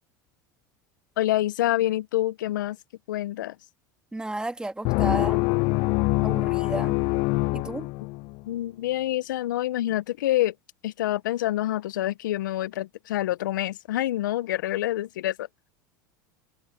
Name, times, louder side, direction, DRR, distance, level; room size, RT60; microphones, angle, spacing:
voice 1, 1.2-2.8 3.1-3.5 8.5-10.5 10.8-15.5, left 14 dB, 80° left, 1.0 m, -27 dB
voice 2, 4.1-5.4 6.2-7.0 7.5-7.9, right 2 dB, 10° right, 2.3 m, -32 dB
sound 1, 4.8-8.4, left 26 dB, 55° left, 0.4 m, -24 dB
hypercardioid pair, 90°, 10 cm